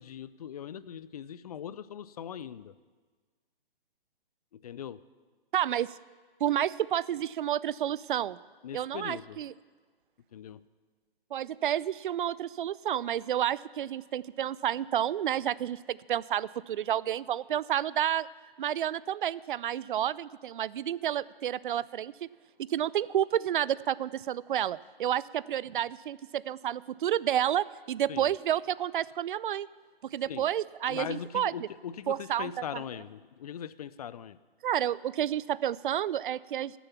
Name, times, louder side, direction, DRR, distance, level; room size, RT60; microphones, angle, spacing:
voice 1, 0.0-2.7 4.6-5.0 8.6-9.4 10.3-10.6 28.1-28.3 30.3-30.5 30.9-34.4, left 9 dB, 40° left, 17 dB, 0.4 m, -40 dB
voice 2, 5.5-5.9 6.4-8.4 8.7-9.5 11.3-18.3 18.6-22.1 22.7-29.7 30.1-31.7 32.1-32.8 34.6-36.7, right 11 dB, 60° right, 20 dB, 0.4 m, -30 dB
15.5 x 7.1 x 7.0 m, 1.4 s
hypercardioid pair, 135°, 30 cm